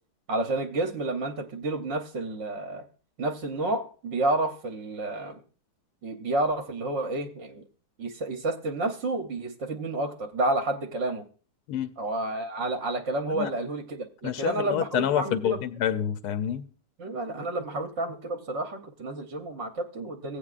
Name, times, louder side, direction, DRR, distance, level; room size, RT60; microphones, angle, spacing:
voice 1, 0.3-2.9 3.2-5.4 6.0-7.6 8.0-11.2 12.0-15.6 17.0-20.4, right 2 dB, 55° right, 0.8 m, -30 dB
voice 2, 14.2-16.6, left 10 dB, 70° left, 1.0 m, -28 dB
16.5 x 8.6 x 2.4 m
omnidirectional pair, 2.2 m